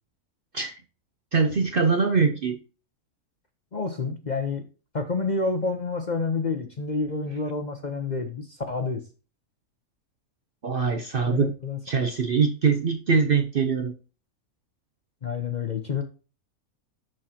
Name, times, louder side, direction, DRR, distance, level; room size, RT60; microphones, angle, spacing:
voice 1, 1.3-2.6 10.6-11.5 11.9-13.9, right 5 dB, 50° right, 7 dB, 0.7 m, -23 dB
voice 2, 3.7-4.7 4.9-9.1 11.2-12.1 15.2-16.0, left 4 dB, 40° left, 6 dB, 0.7 m, -29 dB
12.5 x 4.4 x 2.8 m, 0.35 s
omnidirectional pair, 1.6 m